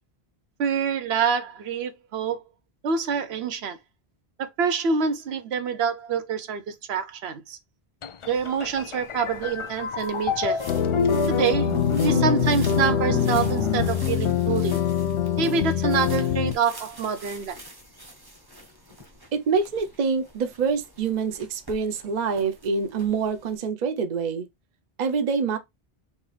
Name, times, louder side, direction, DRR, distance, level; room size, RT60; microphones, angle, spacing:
voice 1, 0.6-2.4 2.8-3.8 4.6-7.6 8.3-10.6 11.3-11.7 12.0-14.8 15.4-17.6, right 6 dB, 85° right, 0.9 m, -26 dB
sound 1, 8.0-14.7, left 5 dB, 55° left, 0.3 m, -30 dB
sound 2, 8.2-23.6, right 1 dB, 25° right, 1.1 m, -48 dB
sound 3, 10.7-16.5, left 8 dB, 85° left, 0.8 m, -24 dB
voice 2, 19.3-24.5 25.0-25.6, right 5 dB, 50° right, 0.7 m, -26 dB
4.6 x 2.8 x 3.2 m
omnidirectional pair, 1.0 m